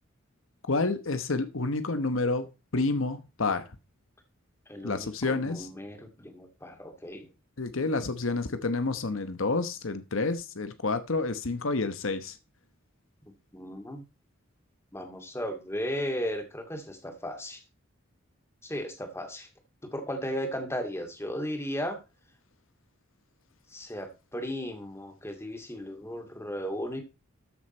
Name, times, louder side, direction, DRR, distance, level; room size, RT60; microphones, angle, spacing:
voice 1, 0.7-2.5 2.7-3.6 4.8-5.7 7.6-12.3, left 3 dB, 75° left, 1.1 m, -29 dB
voice 2, 4.7-7.3 13.5-14.0 14.9-17.6 18.6-19.5 19.8-22.0 23.7-27.0, equal, 15° left, 2.2 m, -35 dB
13.5 x 6.4 x 4.4 m
head